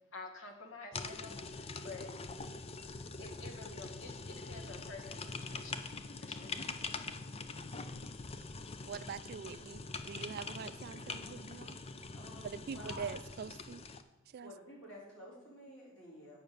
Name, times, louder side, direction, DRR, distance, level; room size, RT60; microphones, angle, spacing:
voice 1, 0.1-2.1 3.2-5.8 6.1-6.6, left 3 dB, 65° left, 3 dB, 1.5 m, -50 dB
sound 1, 0.9-14.0, left 4 dB, 30° left, 0.5 m, -44 dB
voice 2, 7.6-7.9 8.9-11.8 12.4-13.8 14.3-14.5, right 6 dB, 50° right, 13 dB, 0.3 m, -44 dB
voice 3, 12.1-13.1 14.4-16.4, equal, 90° left, -4 dB, 3.6 m, -52 dB
8.8 x 5.7 x 6.7 m, 1.0 s
head